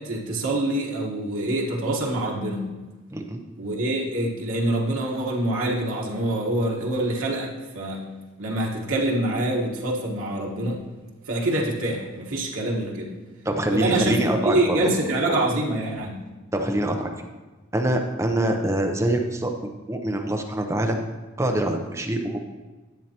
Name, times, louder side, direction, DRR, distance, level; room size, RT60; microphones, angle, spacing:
voice 1, 0.0-2.7 3.5-8.0 8.4-10.8 11.3-13.1 13.7-16.2, right 1 dB, 90° right, -3 dB, 1.4 m, -25 dB
voice 2, 13.4-14.8 15.2-15.3 16.5-17.1 17.7-19.5 19.9-21.0 21.4-22.4, right 1 dB, 15° right, 3 dB, 0.6 m, -24 dB
10.5 x 7.4 x 2.9 m, 1.2 s
head